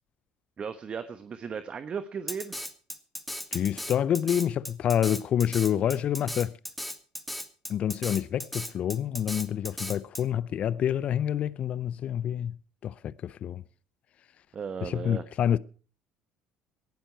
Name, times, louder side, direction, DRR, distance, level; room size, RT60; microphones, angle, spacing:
voice 1, 0.6-2.5 14.5-15.2, right 6 dB, 40° right, 1.1 m, -36 dB
Drum kit, 2.3-10.2, equal, ahead, 1.8 m, -36 dB
voice 2, 3.5-6.6 7.7-12.6 12.8-13.6 14.8-15.6, left 9 dB, 50° left, 0.6 m, -27 dB
19.0 x 12.0 x 4.5 m
hypercardioid pair, 65°, 3 cm